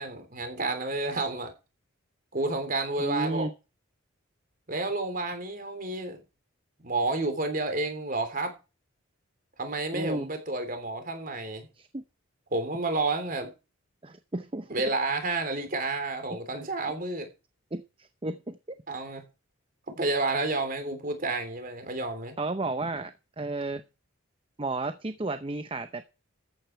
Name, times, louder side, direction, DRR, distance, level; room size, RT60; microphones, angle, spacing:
voice 1, 0.0-1.5 2.3-3.5 4.7-6.2 6.8-8.5 9.6-11.7 12.5-13.5 14.7-17.3 18.9-19.2 19.9-22.3, right 2 dB, 40° right, 3.3 m, -30 dB
voice 2, 3.0-3.5 9.9-10.3 11.8-12.0 14.0-14.7 17.7-18.8 22.4-23.8 24.6-26.0, right 2 dB, 25° right, 0.7 m, -33 dB
14.0 x 9.2 x 4.5 m
head